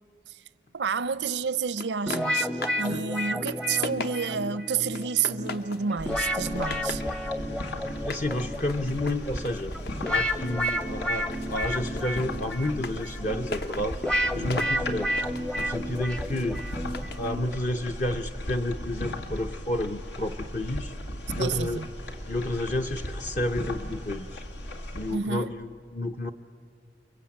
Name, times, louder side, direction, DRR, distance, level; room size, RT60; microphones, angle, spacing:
voice 1, 0.7-7.0 21.4-21.9 25.1-25.5, right 6 dB, 85° right, 0.6 m, -30 dB
sound 1, 1.8-2.9 3.3-4.5 4.9-5.9 6.2-7.1 7.9-11.0 11.3-17.3, left 3 dB, 60° left, 1.0 m, -40 dB
sound 2, 2.1-18.0, equal, 5° left, 0.6 m, -32 dB
sound 3, 6.0-25.2, left 1 dB, 90° left, 2.3 m, -37 dB
voice 2, 8.0-9.7 10.1-14.0 14.3-15.2 15.6-16.6 17.2-20.9 21.3-21.8 22.3-24.4 24.9-26.3, left 1 dB, 40° left, 0.7 m, -30 dB
30.0 x 22.5 x 8.8 m
head